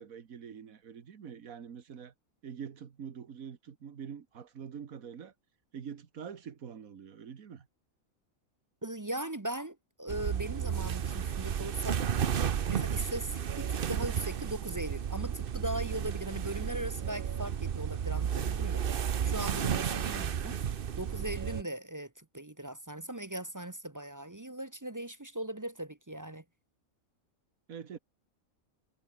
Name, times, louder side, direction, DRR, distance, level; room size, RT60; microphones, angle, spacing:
voice 1, 0.0-2.1 2.4-5.3 5.7-7.7 27.7-28.0, right 7 dB, 80° right, 1.9 m, -45 dB
voice 2, 8.8-12.0 12.7-18.8 19.2-20.6 21.0-26.4, right 1 dB, 15° right, 0.7 m, -39 dB
sound 1, 10.1-21.6, right 8 dB, 45° right, 0.8 m, -33 dB
omnidirectional pair, 1.5 m